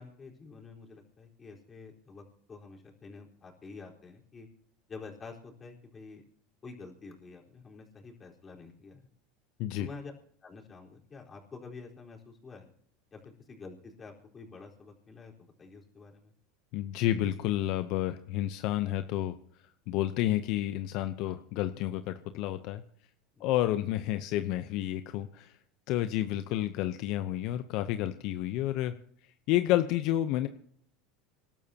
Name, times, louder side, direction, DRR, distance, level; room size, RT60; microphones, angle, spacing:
voice 1, 0.0-4.5 4.9-6.2 6.6-9.1 9.8-10.1 10.4-12.7 13.1-16.3 21.2-21.4 23.4-23.5, left 4 dB, 25° left, -1 dB, 4.3 m, -48 dB
voice 2, 16.7-19.3 19.9-22.8 23.4-25.5 25.9-28.9 29.5-30.5, left 13 dB, 60° left, 10 dB, 0.8 m, -30 dB
26.5 x 12.0 x 2.9 m, 0.63 s
supercardioid pair, 105°, 0 cm